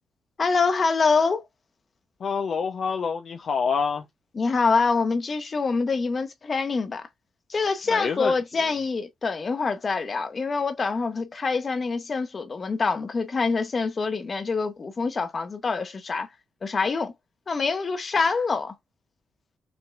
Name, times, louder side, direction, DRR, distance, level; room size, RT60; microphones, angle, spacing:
voice 1, 0.4-1.4 4.3-7.1 7.5-16.3 16.6-17.1 17.5-18.7, left 4 dB, 45° left, 1.3 m, -25 dB
voice 2, 2.2-4.0 7.9-8.3, left 6 dB, 60° left, 0.7 m, -27 dB
6.1 x 2.9 x 2.4 m
supercardioid pair, 60°, 0 cm